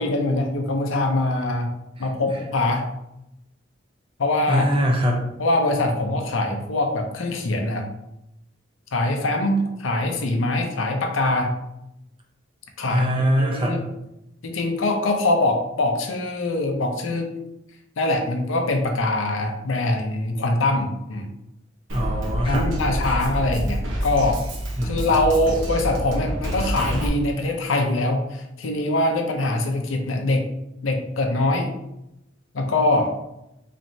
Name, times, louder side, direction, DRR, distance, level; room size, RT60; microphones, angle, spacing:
voice 1, 0.0-1.7 2.0-2.9 4.2-4.6 5.4-7.9 8.9-11.5 12.8-13.1 13.4-13.8 14.4-17.3 18.0-21.3 22.4-24.4 24.8-30.5 30.8-31.7 32.5-33.1, left 2 dB, 90° left, 4 dB, 0.6 m, -23 dB
voice 2, 2.0-2.4 4.5-5.3 12.9-13.8 21.9-22.7 23.0-23.2 24.8-25.1, equal, 30° right, -1 dB, 0.8 m, -23 dB
Drum kit, 21.9-27.1, equal, 85° right, 0.9 m, -27 dB
4.1 x 3.1 x 2.6 m, 0.87 s
head